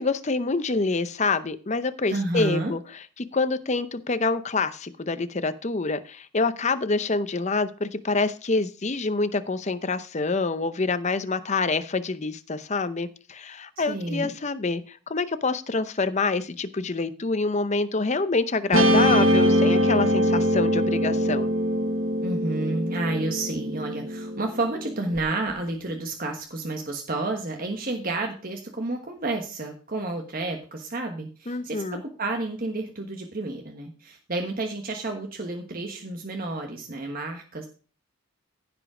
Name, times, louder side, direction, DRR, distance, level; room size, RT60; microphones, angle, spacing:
voice 1, 0.0-2.8 3.3-21.5 31.5-32.0, left 3 dB, 30° left, 12 dB, 0.6 m, -26 dB
voice 2, 2.1-2.7 13.8-14.3 22.2-37.7, right 2 dB, 40° right, 3 dB, 1.3 m, -30 dB
Guitar, 18.7-25.2, equal, 65° right, 1.3 m, -23 dB
15.0 x 5.2 x 4.9 m, 0.38 s
head